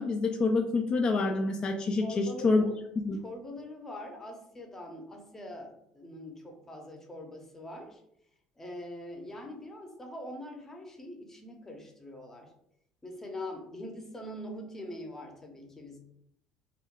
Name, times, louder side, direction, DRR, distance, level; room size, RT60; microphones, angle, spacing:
voice 1, 0.0-2.6 3.0-3.2, left 3 dB, 35° left, 3 dB, 0.4 m, -27 dB
voice 2, 2.0-2.8 3.2-8.0 8.6-12.5 13.0-16.0, left 1 dB, 20° left, 2 dB, 0.7 m, -43 dB
2.2 x 2.2 x 3.6 m, 0.77 s
supercardioid pair, 80°, 2 cm